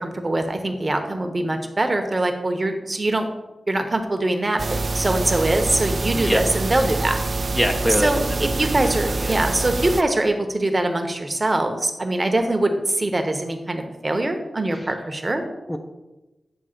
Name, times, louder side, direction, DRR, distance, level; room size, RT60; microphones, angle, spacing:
voice 1, 0.0-3.3 3.7-7.2 8.0-15.4, right 2 dB, 25° right, 5 dB, 0.9 m, -23 dB
sound 1, 4.6-10.0, right 3 dB, 45° right, 0.3 m, -25 dB
voice 2, 7.5-8.2 8.6-9.4 15.4-15.8, equal, 15° left, 4 dB, 0.6 m, -25 dB
8.8 x 3.2 x 6.6 m, 1.0 s
wide cardioid pair, 110°, 0 cm